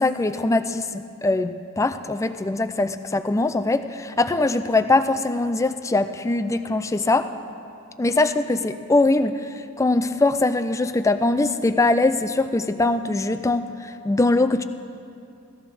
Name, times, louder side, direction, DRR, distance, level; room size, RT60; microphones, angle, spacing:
voice 1, 0.0-7.3 8.0-14.6, left 2 dB, 15° left, 10 dB, 0.4 m, -22 dB
17.5 x 14.0 x 3.4 m, 2.5 s
head